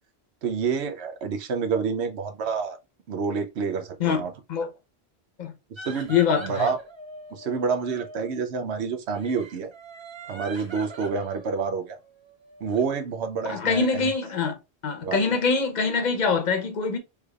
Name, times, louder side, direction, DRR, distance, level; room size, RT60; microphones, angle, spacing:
voice 1, 0.4-2.8 3.1-4.3 5.8-6.8 7.3-9.7 10.3-12.0 12.6-13.9 15.0-15.4, right 5 dB, 85° right, 1.0 m, -28 dB
sound 1, 5.8-8.4 9.1-12.9, right 2 dB, 35° right, 0.6 m, -43 dB
voice 2, 6.1-6.7 13.5-14.6 14.8-17.0, left 5 dB, 45° left, 0.8 m, -24 dB
3.4 x 3.3 x 2.3 m
omnidirectional pair, 1.1 m